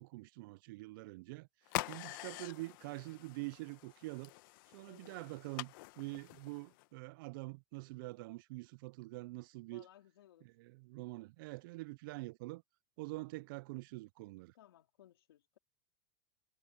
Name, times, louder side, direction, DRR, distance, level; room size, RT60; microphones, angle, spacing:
voice 1, 0.0-1.5 1.9-4.3 4.7-9.9 10.4-12.6 13.0-14.5, right 22 dB, 65° right, 0.4 m, -45 dB
sound 1, 1.7-6.9, left 21 dB, 65° left, 1.1 m, -45 dB
voice 2, 4.8-5.4 9.7-10.5 13.1-13.4 14.5-15.6, left 12 dB, 90° left, 4.2 m, -62 dB
supercardioid pair, 130°, 12 cm